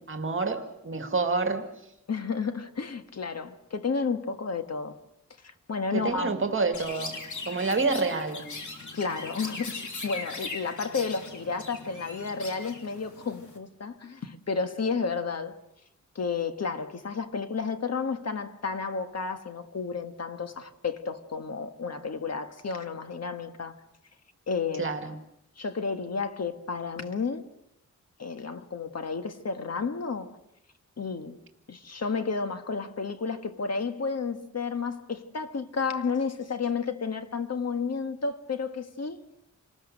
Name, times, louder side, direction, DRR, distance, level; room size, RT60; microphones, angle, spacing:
voice 1, 0.0-1.7 5.9-7.2 7.5-8.5 24.8-25.1, right 3 dB, 40° right, 2.1 m, -28 dB
voice 2, 2.1-5.0 5.4-6.4 7.5-7.6 8.9-9.8 10.0-15.6 16.1-23.7 24.5-24.9 25.6-27.4 28.2-30.4 31.0-31.4 31.7-39.2, left 5 dB, 55° left, 1.6 m, -32 dB
Chirp tweet, 6.7-13.6, left 3 dB, 75° left, 3.3 m, -40 dB
28.0 x 20.0 x 6.5 m
wide cardioid pair, 135°, 30 cm